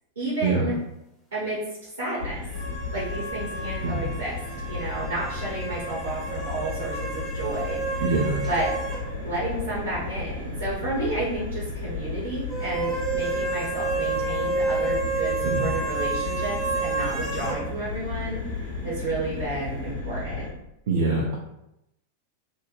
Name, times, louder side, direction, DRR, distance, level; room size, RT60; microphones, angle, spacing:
voice 1, 0.2-0.8 1.3-1.6 2.0-2.4 2.9-4.3 4.7-8.1 8.5-8.7 9.2-18.4 18.8-20.5, right 2 dB, 70° right, -7 dB, 0.9 m, -31 dB
sound 1, 2.2-20.5, left 3 dB, 85° left, 0.8 m, -34 dB
sound 2, 2.5-9.1 9.3-9.4 12.5-17.6, right 3 dB, 15° left, 0.8 m, -30 dB
voice 2, 8.0-8.4 15.4-15.6 20.9-21.3, right 3 dB, 55° right, -2 dB, 0.3 m, -24 dB
2.8 x 2.1 x 2.5 m, 0.85 s
figure-of-eight pair, 90°, 0 cm